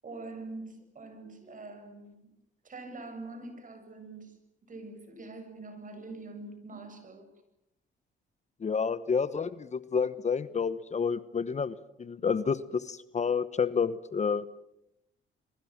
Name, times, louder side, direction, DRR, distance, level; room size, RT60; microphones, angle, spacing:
voice 1, 0.0-2.3 2.6-4.4 4.7-7.3, right 3 dB, 40° right, 7 dB, 7.4 m, -44 dB
voice 2, 8.6-14.4, left 6 dB, 35° left, 15 dB, 1.1 m, -29 dB
29.0 x 22.5 x 7.4 m, 0.82 s
cardioid pair, 90°, 20 cm